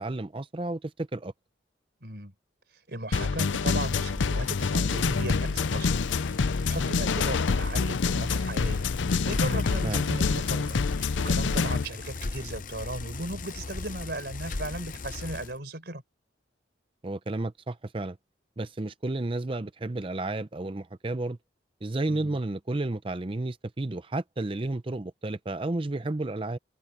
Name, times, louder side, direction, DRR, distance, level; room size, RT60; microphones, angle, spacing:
voice 1, 0.0-1.3 9.8-10.0 17.0-18.2 18.6-21.4 21.8-26.6, right 2 dB, 30° right, 0.6 m, -32 dB
voice 2, 2.0-2.3 2.9-6.0 6.4-16.0 22.1-22.4, right 1 dB, 60° right, 4.8 m, -37 dB
sound 1, 3.1-11.8, left 4 dB, 85° left, 0.6 m, -26 dB
Bicycle, 3.9-15.6, left 3 dB, 45° left, 0.8 m, -38 dB
open air
head